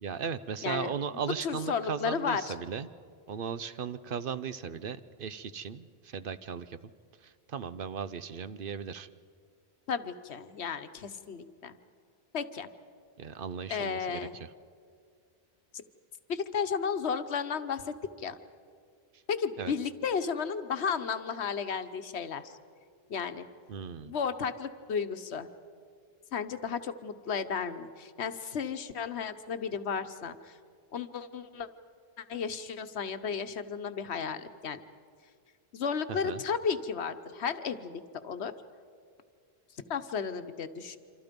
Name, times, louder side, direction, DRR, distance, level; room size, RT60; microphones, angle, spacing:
voice 1, 0.0-2.9 3.3-6.8 7.5-9.1 13.2-14.3 19.6-19.7 23.7-24.1 36.1-36.4, right 6 dB, 60° right, 13 dB, 0.9 m, -37 dB
voice 2, 0.6-2.6 9.9-11.8 12.3-12.7 13.7-14.4 15.7-15.8 16.3-18.4 19.3-22.5 23.1-23.5 24.0-25.5 26.3-30.6 30.9-31.7 32.2-34.8 35.7-38.5 39.9-41.0, left 6 dB, 90° left, 10 dB, 1.3 m, -33 dB
27.0 x 26.0 x 5.3 m, 2.2 s
omnidirectional pair, 1.1 m